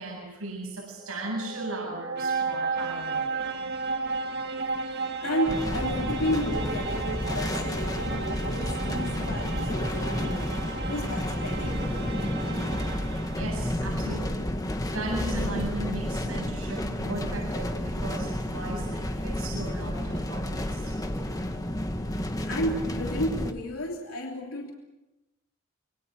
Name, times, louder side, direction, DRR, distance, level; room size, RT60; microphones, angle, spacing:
voice 1, 0.0-3.7 13.3-14.5 14.9-21.0, right 2 dB, 80° right, 0 dB, 7.7 m, -37 dB
sound 1, 1.0-13.8, right 4 dB, 55° right, 2.1 m, -34 dB
voice 2, 5.2-10.5 10.8-12.3 22.4-24.7, equal, 80° left, 0 dB, 3.2 m, -32 dB
sound 2, 5.5-23.5, left 1 dB, 15° left, 1.9 m, -31 dB
26.5 x 23.5 x 6.3 m, 1.0 s
head